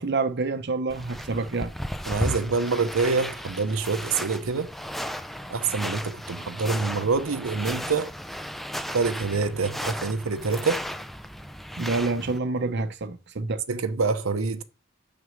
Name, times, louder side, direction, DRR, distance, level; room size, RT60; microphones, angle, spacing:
voice 1, 0.0-1.7 11.8-13.6, right 3 dB, 55° right, 0.7 m, -27 dB
sound 1, 0.9-12.4, equal, ahead, 0.4 m, -35 dB
voice 2, 2.1-4.7 5.5-8.1 8.9-10.8 13.7-14.6, right 4 dB, 90° right, 0.8 m, -26 dB
6.3 x 6.1 x 6.3 m
head